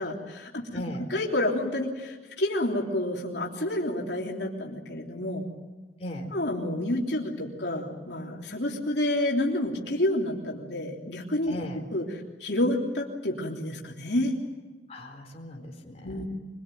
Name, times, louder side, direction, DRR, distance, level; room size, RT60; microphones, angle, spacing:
voice 1, 0.0-0.8 1.1-5.4 6.3-11.5 11.9-12.0 12.4-14.4 16.0-16.3, left 1 dB, 75° left, -1 dB, 3.3 m, -29 dB
voice 2, 0.7-1.1 6.0-6.3 11.5-11.8 14.9-16.3, equal, 35° left, 1 dB, 4.2 m, -37 dB
25.0 x 22.5 x 9.1 m, 1.3 s
head